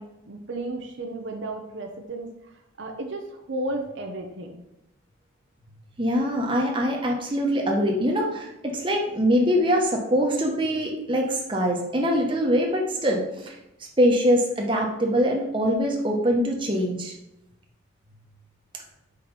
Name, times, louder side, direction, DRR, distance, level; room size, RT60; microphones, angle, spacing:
voice 1, 0.0-4.6, right 1 dB, 65° right, 3 dB, 0.7 m, -34 dB
voice 2, 6.0-13.6 14.0-17.1, equal, 25° right, 0 dB, 0.9 m, -23 dB
4.5 x 4.5 x 5.3 m, 0.86 s
head